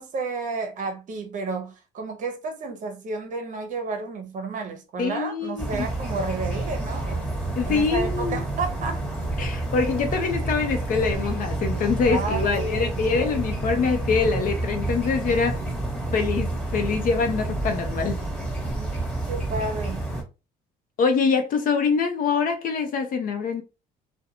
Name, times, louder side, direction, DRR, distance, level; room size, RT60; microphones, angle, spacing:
voice 1, 0.0-7.2 7.6-9.0 12.1-13.0 18.6-20.1, right 3 dB, 50° right, 0.8 m, -31 dB
voice 2, 5.0-5.9 7.5-8.4 9.4-15.6 16.1-18.2 21.0-23.6, left 5 dB, 55° left, 0.7 m, -24 dB
sound 1, 5.6-20.2, right 2 dB, 10° left, 1.3 m, -29 dB
2.5 x 2.2 x 2.8 m
cardioid pair, 110°, 17 cm